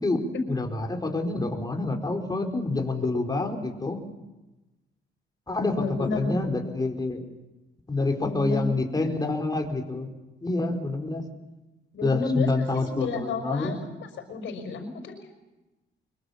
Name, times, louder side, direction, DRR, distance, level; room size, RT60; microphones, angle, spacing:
voice 1, 0.5-4.0 5.5-5.9 6.1-7.2 7.9-10.1 10.4-11.2 12.0-13.7, left 3 dB, 20° left, 2 dB, 4.8 m, -27 dB
voice 2, 5.7-6.4 8.2-9.1 11.9-15.3, left 3 dB, 70° left, 4 dB, 5.6 m, -31 dB
24.5 x 23.5 x 7.3 m, 1.0 s
cardioid pair, 90°, 20 cm